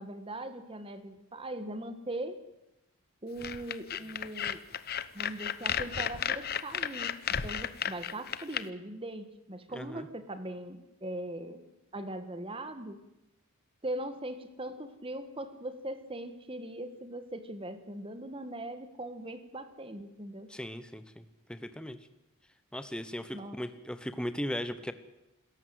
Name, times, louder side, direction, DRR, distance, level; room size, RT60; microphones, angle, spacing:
voice 1, 0.0-2.4 3.2-4.6 5.1-11.7 11.9-13.0 13.8-20.5 23.3-23.6, right 1 dB, 25° right, 10 dB, 1.7 m, -40 dB
sound 1, 3.4-8.6, left 8 dB, 45° left, 0.8 m, -33 dB
voice 2, 9.7-10.1 20.5-22.0 22.7-24.9, equal, 5° left, 11 dB, 1.1 m, -38 dB
27.0 x 14.0 x 7.9 m, 0.93 s
head